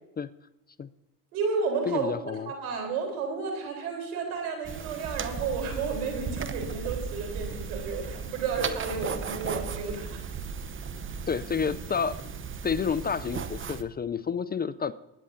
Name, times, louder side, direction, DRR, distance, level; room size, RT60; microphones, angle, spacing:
voice 1, 1.3-2.1 2.5-10.2, right 5 dB, 85° right, 3 dB, 3.8 m, -32 dB
voice 2, 1.9-2.5 11.3-12.3 12.6-14.9, left 6 dB, 25° left, 14 dB, 0.4 m, -30 dB
sound 1, 4.6-13.8, right 6 dB, 30° right, 0.8 m, -36 dB
20.5 x 9.8 x 2.7 m, 0.96 s
supercardioid pair, 80°, 43 cm